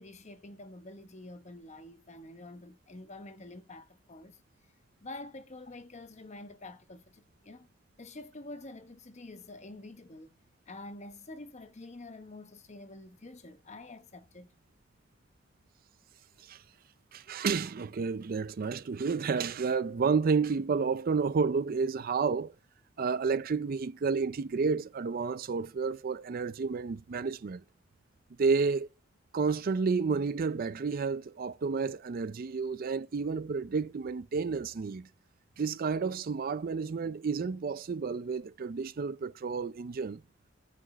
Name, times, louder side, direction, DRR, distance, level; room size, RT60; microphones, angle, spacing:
voice 1, 0.0-4.4 5.0-7.7 8.0-10.3 10.7-14.5, left 2 dB, 35° left, 1.0 m, -47 dB
voice 2, 17.1-22.5 23.0-27.6 28.4-28.9 29.3-35.1 35.6-40.2, right 5 dB, 50° right, 0.4 m, -30 dB
9.9 x 5.0 x 5.1 m
head